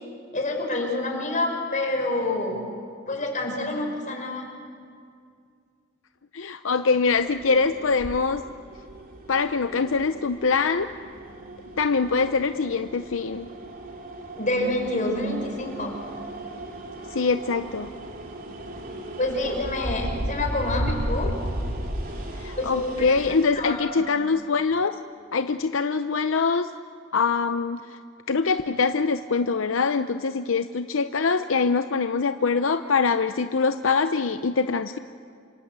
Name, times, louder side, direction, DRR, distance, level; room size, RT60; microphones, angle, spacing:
voice 1, 0.3-2.6 3.1-4.5 14.4-15.9 19.2-21.3 22.5-23.1 23.6-24.1, left 2 dB, 40° left, 2 dB, 5.6 m, -27 dB
voice 2, 6.3-8.4 9.3-10.9 11.8-13.5 17.1-17.9 22.4-25.0 25.3-26.7 27.1-28.0 28.3-35.0, left 4 dB, 80° left, 9 dB, 0.7 m, -24 dB
sound 1, 7.1-23.5, right 1 dB, 45° right, 3.0 m, -35 dB
28.0 x 26.0 x 8.2 m, 2.3 s
head